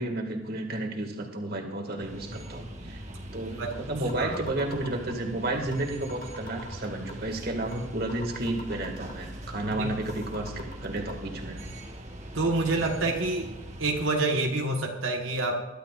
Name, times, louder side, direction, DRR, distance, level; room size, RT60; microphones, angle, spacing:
voice 1, 0.0-3.0 3.3-11.6, right 2 dB, 50° right, 3 dB, 2.0 m, -32 dB
sound 1, 2.0-14.0, equal, 35° right, 1.4 m, -41 dB
sound 2, 3.7-3.8 4.1-5.3 5.7-5.8 6.1-7.3 7.7-7.8 8.1-9.3 9.7-9.8 10.1-11.1, left 2 dB, 45° left, 1.8 m, -45 dB
voice 2, 12.3-13.5 13.8-15.7, right 2 dB, 90° right, 1 dB, 1.3 m, -27 dB
22.0 x 11.5 x 2.4 m, 1.1 s
head